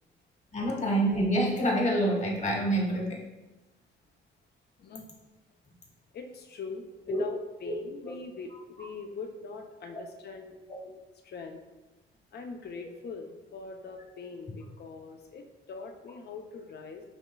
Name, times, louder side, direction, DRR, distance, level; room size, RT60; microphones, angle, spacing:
voice 1, 0.5-3.2 7.1-7.2 7.6-7.7 10.7-10.8, right 1 dB, 35° left, -1 dB, 1.4 m, -27 dB
voice 2, 6.1-10.6 11.2-11.6 12.3-17.0, left 4 dB, 55° left, 4 dB, 0.7 m, -42 dB
7.3 x 3.1 x 2.3 m, 1.1 s
cardioid pair, 90°, 20 cm